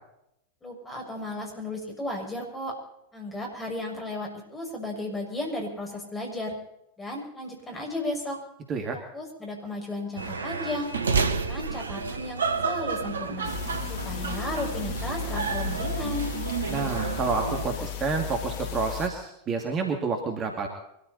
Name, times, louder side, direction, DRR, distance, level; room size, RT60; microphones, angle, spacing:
voice 1, 0.6-2.7 3.1-6.6 7.0-8.4 8.9-10.9 11.3-13.5 13.9-16.4, left 1 dB, 15° left, 1 dB, 6.5 m, -34 dB
sound 1, 10.2-17.6, right 5 dB, 70° right, 1.2 m, -30 dB
sound 2, 13.4-19.1, left 10 dB, 50° left, 1.9 m, -35 dB
voice 2, 16.7-20.7, right 4 dB, 30° right, 3 dB, 2.6 m, -29 dB
24.0 x 14.0 x 4.3 m, 0.79 s
figure-of-eight pair, 90°, 0 cm